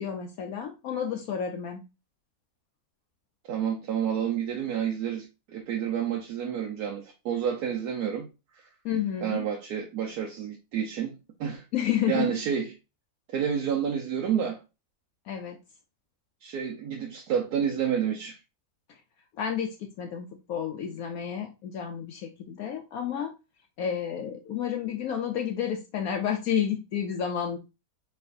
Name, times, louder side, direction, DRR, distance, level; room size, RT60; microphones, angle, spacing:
voice 1, 0.0-1.8 8.8-9.5 11.7-12.3 15.3-15.6 19.4-23.3 23.8-27.6, left 8 dB, 75° left, 1.0 m, -30 dB
voice 2, 3.5-8.3 8.5-8.7 9.2-11.6 12.1-12.7 13.3-14.6 16.4-18.4, right 8 dB, 80° right, 1.3 m, -29 dB
4.6 x 4.2 x 2.5 m
omnidirectional pair, 1.6 m